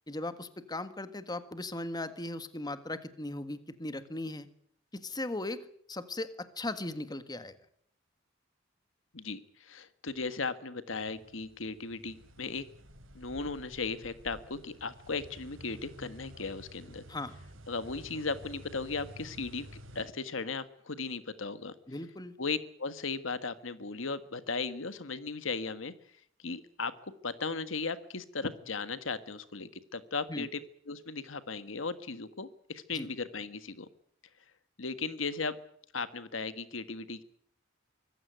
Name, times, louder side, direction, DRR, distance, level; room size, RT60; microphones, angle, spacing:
voice 1, 0.1-4.5 4.9-7.5 17.1-17.3 21.9-22.3 30.3-30.5 32.9-33.1, left 2 dB, 20° left, 11 dB, 1.6 m, -38 dB
voice 2, 9.1-12.6 13.1-17.0 17.7-19.7 19.9-21.7 22.4-25.9 26.4-26.9 27.2-33.9 34.8-35.5 35.9-37.2, left 4 dB, 80° left, 12 dB, 1.6 m, -36 dB
sound 1, 10.9-20.0, right 1 dB, 90° right, 3.6 m, -51 dB
25.0 x 15.5 x 9.3 m, 0.66 s
head